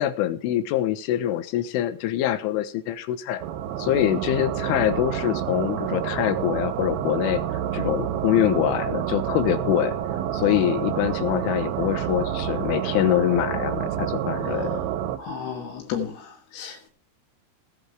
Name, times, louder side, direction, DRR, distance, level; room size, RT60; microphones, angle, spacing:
voice 1, 0.0-3.4 3.8-7.4 7.7-10.0 10.3-14.8, left 12 dB, 80° left, 3.7 m, -24 dB
sound 1, 3.4-15.2, right 10 dB, 70° right, 2.5 m, -28 dB
voice 2, 15.2-16.9, left 7 dB, 60° left, 3.9 m, -33 dB
18.0 x 8.5 x 4.8 m
omnidirectional pair, 5.6 m